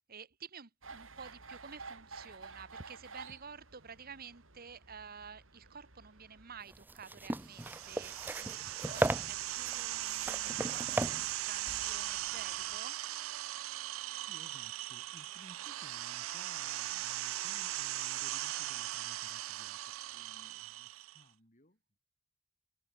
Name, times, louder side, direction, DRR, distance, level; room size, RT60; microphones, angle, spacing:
voice 1, 0.1-13.0, right 6 dB, 45° right, 1.4 m, -51 dB
sound 1, 0.8-6.6, right 4 dB, 70° right, 5.5 m, -52 dB
sound 2, 6.7-12.7, right 1 dB, 10° right, 0.5 m, -37 dB
sound 3, 7.5-21.2, right 14 dB, 90° right, 0.5 m, -39 dB
voice 2, 14.2-22.0, left 1 dB, 40° left, 6.4 m, -59 dB
head